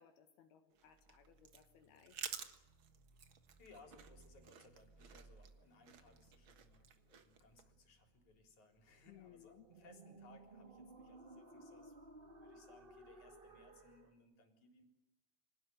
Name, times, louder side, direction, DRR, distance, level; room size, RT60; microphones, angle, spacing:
voice 1, 0.0-2.2 9.1-9.7, left 9 dB, 75° left, 6 dB, 3.3 m, -63 dB
sound 1, 0.7-7.6, right 7 dB, 90° right, 1.1 m, -53 dB
sound 2, 0.9-14.1, right 2 dB, 70° right, 0.5 m, -61 dB
voice 2, 3.6-14.8, left 3 dB, 45° left, 4 dB, 5.0 m, -65 dB
26.0 x 18.5 x 9.4 m, 0.97 s
omnidirectional pair, 4.7 m